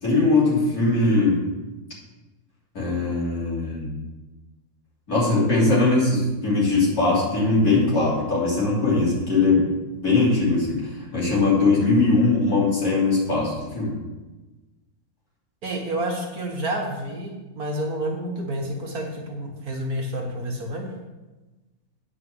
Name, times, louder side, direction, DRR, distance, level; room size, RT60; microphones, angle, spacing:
voice 1, 0.0-1.4 2.7-3.9 5.1-9.6 10.0-13.9, left 3 dB, 50° left, -7 dB, 3.8 m, -20 dB
voice 2, 15.6-20.9, right 1 dB, 55° right, 0 dB, 1.7 m, -29 dB
9.3 x 4.7 x 7.6 m, 1.1 s
omnidirectional pair, 2.0 m